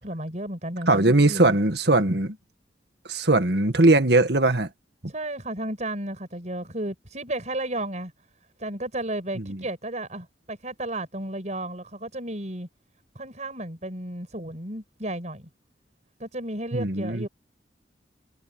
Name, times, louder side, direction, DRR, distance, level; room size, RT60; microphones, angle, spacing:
voice 1, 0.0-1.6 5.1-8.1 8.6-12.7 13.1-15.5 16.2-17.3, right 1 dB, 40° right, 6.6 m, -33 dB
voice 2, 0.9-2.4 3.1-4.7 9.4-9.6 16.7-17.3, right 2 dB, 65° right, 1.9 m, -20 dB
head